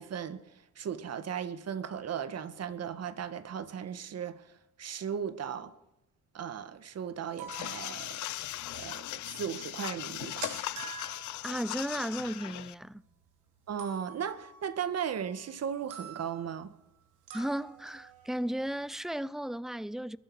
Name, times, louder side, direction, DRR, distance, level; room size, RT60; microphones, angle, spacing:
voice 1, 0.0-5.7 6.3-8.3 8.7-10.5 13.7-16.7, right 8 dB, 55° right, 1.5 m, -37 dB
sound 1, 7.2-8.7 8.9-9.0 9.4-9.5 9.6-9.7 9.9-13.2 13.8-15.6 15.9-16.6 17.3-19.0, right 6 dB, 85° right, 3.2 m, -48 dB
sound 2, 7.5-12.7, left 15 dB, 75° left, 0.6 m, -38 dB
voice 2, 11.4-13.0 17.3-20.2, right 1 dB, ahead, 0.4 m, -35 dB
21.5 x 11.5 x 4.8 m
cardioid pair, 90°, 30 cm